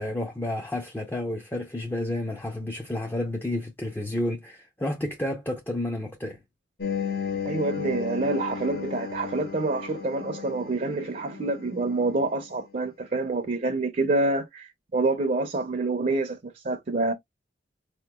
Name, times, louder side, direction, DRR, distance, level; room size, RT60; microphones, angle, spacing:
voice 1, 0.0-6.4, left 1 dB, 10° left, 0.4 m, -31 dB
sound 1, 6.8-12.3, left 7 dB, 55° left, 0.7 m, -34 dB
voice 2, 7.4-17.1, right 2 dB, 40° right, 0.5 m, -27 dB
4.2 x 2.9 x 2.2 m
head